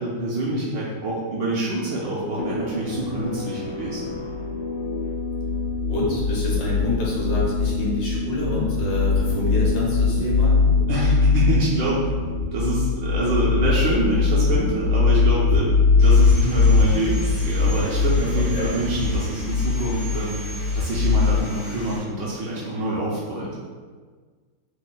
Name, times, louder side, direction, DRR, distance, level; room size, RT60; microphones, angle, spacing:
voice 1, 0.0-4.1 10.9-12.0 12.5-20.4 20.7-23.5, right 1 dB, 70° right, -6 dB, 1.1 m, -26 dB
sound 1, 2.2-18.5, left 3 dB, 90° left, 1.5 m, -33 dB
sound 2, 4.3-21.4, left 4 dB, 85° right, 1.5 m, -21 dB
voice 2, 5.9-10.6 18.4-18.7, left 1 dB, 65° left, -5 dB, 1.3 m, -28 dB
Sawing, 16.0-22.0, equal, 50° left, 0.7 m, -40 dB
3.8 x 2.1 x 3.8 m, 1.5 s
omnidirectional pair, 2.4 m